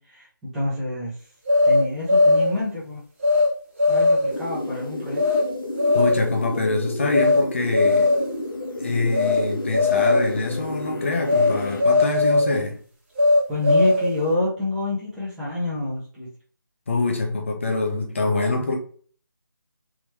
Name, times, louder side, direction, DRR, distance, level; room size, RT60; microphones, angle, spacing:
voice 1, 0.5-1.1 1.6-3.0 3.9-5.2 13.5-16.3, left 2 dB, ahead, 0.8 m, -27 dB
sound 1, 1.5-2.6 3.2-3.5 3.8-4.4 5.2-5.4 5.8-6.3 7.1-7.4 7.7-8.4 9.1-9.4 9.7-10.3 11.3-11.5 11.8-12.6 13.2-14.2, left 3 dB, 35° right, 1.3 m, -19 dB
sound 2, 4.3-11.8, left 1 dB, 80° left, 1.2 m, -32 dB
voice 2, 5.9-8.1 8.8-12.8 16.9-18.8, left 3 dB, 35° left, 0.8 m, -25 dB
3.6 x 3.0 x 3.0 m
figure-of-eight pair, 170°, 11 cm